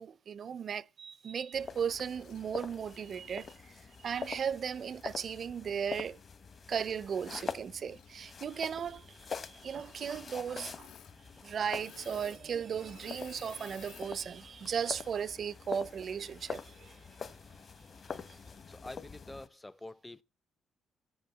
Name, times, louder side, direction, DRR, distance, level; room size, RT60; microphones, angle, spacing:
voice 1, 0.0-6.2 6.7-10.9 11.4-17.1 18.1-18.4, right 7 dB, 55° right, 0.6 m, -36 dB
sound 1, 1.5-19.5, left 5 dB, 45° left, 1.0 m, -45 dB
Engine / Mechanisms, 2.1-2.5 2.9-4.2 5.0-5.1 7.8-8.4 8.6-9.0 9.6-10.0 10.6-11.2 11.4-14.1 14.6-14.9, left 10 dB, 80° left, 0.7 m, -56 dB
voice 2, 18.4-20.2, left 2 dB, 15° left, 0.6 m, -48 dB
12.5 x 7.9 x 7.4 m
cardioid pair, 90°, 0 cm